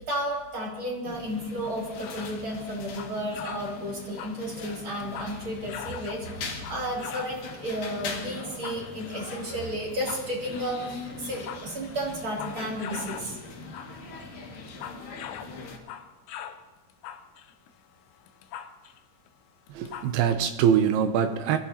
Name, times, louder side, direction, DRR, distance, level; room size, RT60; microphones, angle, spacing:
voice 1, 0.0-13.4, equal, 35° right, -3 dB, 3.4 m, -33 dB
sound 1, 1.0-15.8, left 4 dB, 60° left, 3.6 m, -41 dB
sound 2, 1.6-2.4 2.8-3.7 4.0-5.4 5.7-7.4 8.4-9.2 9.8-10.6 11.2-13.3 13.6-13.9 14.2-16.6 16.9-19.0 19.3-19.4 19.7-20.3, left 9 dB, 90° left, 3.0 m, -41 dB
voice 2, 19.7-21.6, right 8 dB, 80° right, 8 dB, 2.6 m, -23 dB
24.0 x 15.0 x 2.9 m, 1.2 s
omnidirectional pair, 4.6 m